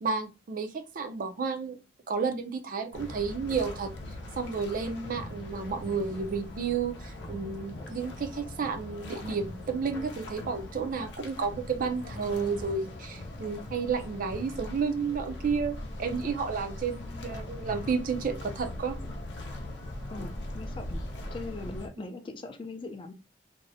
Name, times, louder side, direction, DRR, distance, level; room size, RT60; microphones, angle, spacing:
voice 1, 0.0-1.8 2.1-3.9 4.4-19.0 22.0-22.1, right 5 dB, 50° right, 8 dB, 0.4 m, -31 dB
sound 1, 2.9-21.9, left 1 dB, 90° left, 0.6 m, -40 dB
voice 2, 20.1-21.0 21.3-23.1, left 3 dB, 30° left, 7 dB, 0.3 m, -40 dB
2.6 x 2.0 x 2.6 m, 0.28 s
head